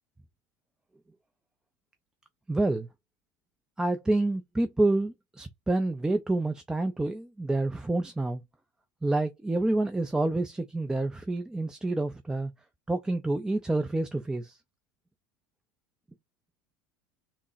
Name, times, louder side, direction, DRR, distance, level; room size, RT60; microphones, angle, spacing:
voice 1, 2.5-2.9 3.8-8.4 9.0-12.5 12.9-14.6, right 2 dB, 5° right, 0.4 m, -28 dB
3.6 x 2.0 x 2.4 m
hypercardioid pair, 90°, 9 cm